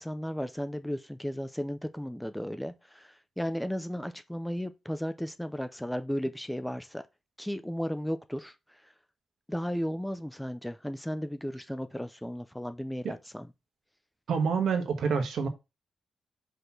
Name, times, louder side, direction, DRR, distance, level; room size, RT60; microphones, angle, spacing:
voice 1, 0.0-7.0 7.4-8.9 9.5-13.5, equal, 5° left, 0.5 m, -35 dB
voice 2, 14.3-15.5, right 5 dB, 70° right, 1.6 m, -27 dB
5.5 x 4.2 x 5.9 m
wide cardioid pair, 140°, 0 cm